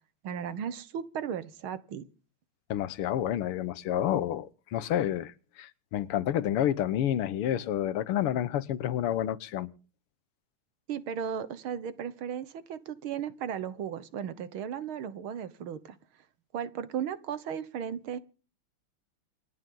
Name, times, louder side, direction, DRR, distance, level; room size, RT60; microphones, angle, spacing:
voice 1, 0.2-2.1 10.9-16.0 16.5-18.2, right 8 dB, 70° right, 2.0 m, -35 dB
voice 2, 2.7-9.7, left 11 dB, 90° left, 1.8 m, -29 dB
27.5 x 9.8 x 3.8 m
omnidirectional pair, 2.4 m